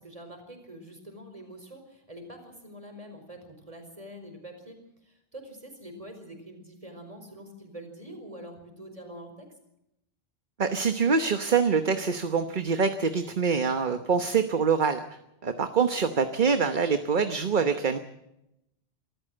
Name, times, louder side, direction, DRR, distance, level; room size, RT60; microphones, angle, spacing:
voice 1, 0.0-9.5, right 1 dB, 35° right, 5 dB, 4.9 m, -45 dB
voice 2, 10.6-15.0 15.4-18.0, right 5 dB, 50° right, 8 dB, 1.2 m, -25 dB
25.0 x 14.0 x 7.7 m, 0.86 s
omnidirectional pair, 1.1 m